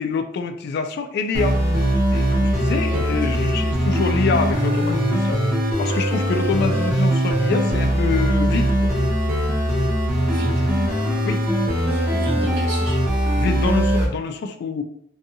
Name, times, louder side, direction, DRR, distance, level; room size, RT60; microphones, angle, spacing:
voice 1, 0.0-1.6 2.1-5.4 5.8-8.9 11.3-11.4 13.4-14.8, left 4 dB, 55° left, 8 dB, 0.3 m, -26 dB
sound 1, 1.3-14.1, equal, 50° right, 0.7 m, -21 dB
voice 2, 10.3-10.7 11.9-13.5, equal, 65° right, -4 dB, 1.0 m, -32 dB
2.5 x 2.3 x 2.7 m, 0.70 s
head